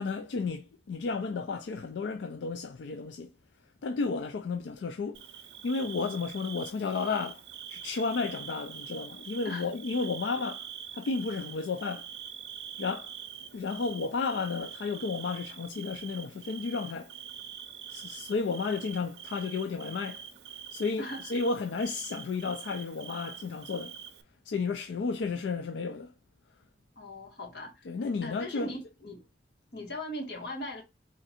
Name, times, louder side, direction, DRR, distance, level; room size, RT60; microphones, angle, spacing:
voice 1, 0.0-3.3 3.8-5.2 5.6-7.4 7.7-12.1 12.8-13.1 13.5-17.1 17.9-20.2 20.7-24.0 24.4-26.1 27.9-28.7, left 4 dB, 85° left, 0.4 m, -32 dB
Bird / Cricket, 5.1-24.2, right 9 dB, 70° right, 0.5 m, -45 dB
voice 2, 27.0-27.9 28.2-29.3 29.7-30.8, equal, 65° left, 1.4 m, -39 dB
3.7 x 2.5 x 4.1 m
head